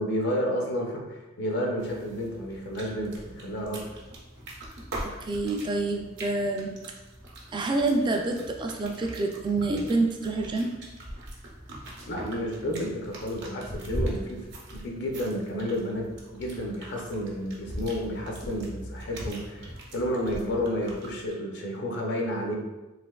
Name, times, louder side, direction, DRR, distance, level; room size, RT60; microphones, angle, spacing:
voice 1, 0.0-3.9 12.1-22.5, equal, 65° left, 0 dB, 0.6 m, -31 dB
sound 1, 1.8-21.3, right 1 dB, 60° right, 0.8 m, -41 dB
voice 2, 5.0-6.8 7.5-10.8, right 2 dB, 25° right, 2 dB, 0.3 m, -27 dB
3.3 x 2.9 x 2.3 m, 1.1 s
head